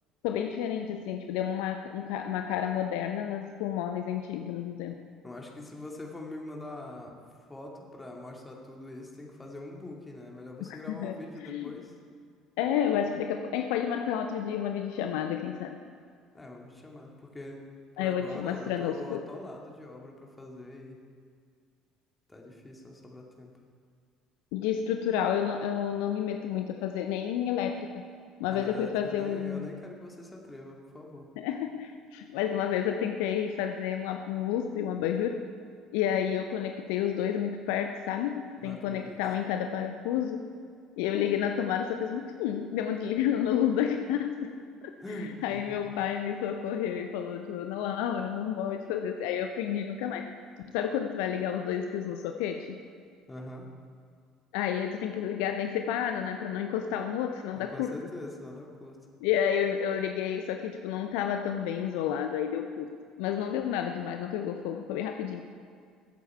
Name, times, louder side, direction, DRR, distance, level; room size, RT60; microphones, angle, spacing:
voice 1, 0.2-5.0 10.7-11.2 11.5-11.7 12.6-15.8 18.0-19.2 24.5-28.0 28.4-29.7 31.4-35.5 35.9-40.5 41.0-44.9 45.2-50.3 50.7-52.8 54.5-57.9 59.2-65.4, left 9 dB, 65° left, 6 dB, 0.6 m, -30 dB
voice 2, 5.2-7.2 7.5-11.9 16.3-17.6 18.0-21.0 22.3-23.5 28.5-31.3 38.6-39.2 45.0-45.8 53.3-53.7 57.5-59.0, left 1 dB, 15° left, 0 dB, 2.4 m, -43 dB
21.0 x 8.2 x 4.6 m, 2.2 s
figure-of-eight pair, 60°, 0 cm